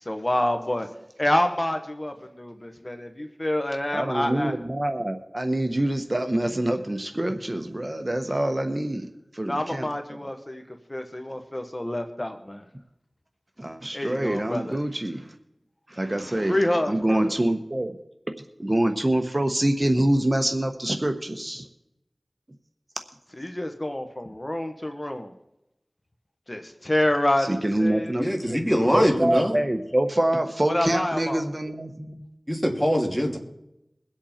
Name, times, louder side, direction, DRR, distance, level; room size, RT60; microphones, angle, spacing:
voice 1, 0.0-0.9 1.2-4.5 9.4-12.6 13.9-14.8 16.5-17.3 23.4-25.3 26.5-28.1 30.6-31.5, left 1 dB, 35° left, 6 dB, 1.3 m, -27 dB
voice 2, 3.9-9.9 13.6-15.3 15.9-18.0 18.6-21.7 27.5-28.6 28.9-32.2, right 1 dB, 35° right, 6 dB, 1.2 m, -25 dB
voice 3, 28.1-29.6 32.5-33.4, equal, ahead, 1 dB, 2.8 m, -23 dB
22.5 x 8.0 x 4.4 m, 0.85 s
wide cardioid pair, 45°, 0 cm